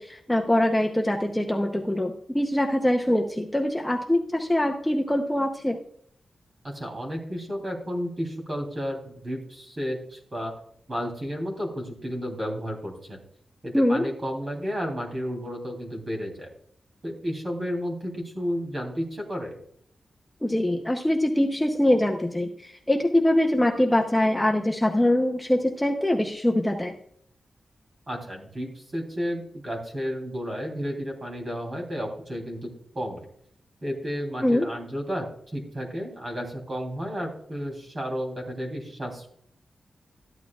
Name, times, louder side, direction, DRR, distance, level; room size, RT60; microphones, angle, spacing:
voice 1, 0.0-5.8 13.7-14.0 20.4-26.9 34.4-34.7, left 1 dB, 5° left, 1 dB, 0.7 m, -23 dB
voice 2, 6.6-10.5 10.9-13.2 13.6-16.5 17.0-19.5 28.1-32.7 32.9-33.2 33.8-35.3 35.5-39.3, equal, 35° right, 0 dB, 3.1 m, -32 dB
13.5 x 11.0 x 2.4 m, 0.64 s
wide cardioid pair, 170°, 0 cm